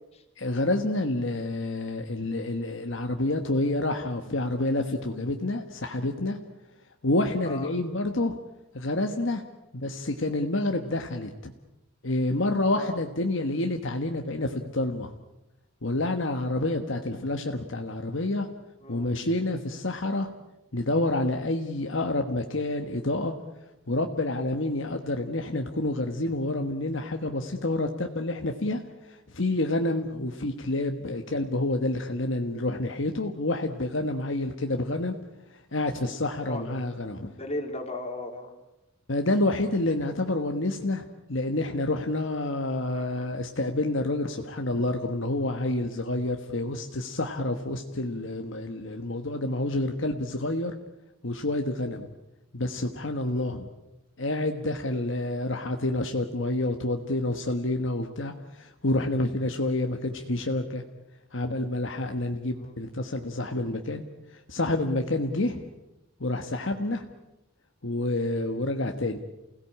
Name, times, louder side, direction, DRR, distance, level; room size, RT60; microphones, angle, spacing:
voice 1, 0.4-6.4 7.0-8.3 8.7-9.4 9.7-11.5 12.0-15.1 15.8-18.5 18.9-20.3 20.7-23.3 23.9-35.2 35.5-37.3 39.1-50.7 51.2-52.1 52.5-53.7 54.2-60.8 61.3-64.0 64.3-65.7 66.2-67.1 67.8-69.2, left 2 dB, 65° left, 4 dB, 1.4 m, -28 dB
voice 2, 18.8-19.1 36.5-36.9 37.3-38.5 42.9-43.3 53.3-53.6 62.6-62.7, left 2 dB, 30° left, 4 dB, 3.1 m, -37 dB
29.0 x 17.5 x 8.6 m, 0.98 s
head